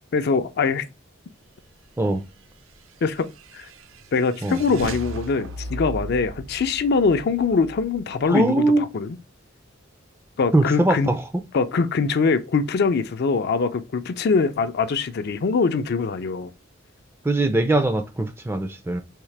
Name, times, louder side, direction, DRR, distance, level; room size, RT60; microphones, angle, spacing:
voice 1, 0.1-0.9 3.0-3.3 3.5-3.7 4.1-9.2 10.4-11.1 11.5-16.5, left 4 dB, 55° left, 0.4 m, -23 dB
sound 1, 2.7-8.3, right 3 dB, 75° right, 0.4 m, -36 dB
voice 2, 8.3-8.8 10.5-11.2 17.2-19.0, right 2 dB, 10° right, 0.4 m, -21 dB
3.7 x 2.9 x 3.2 m
head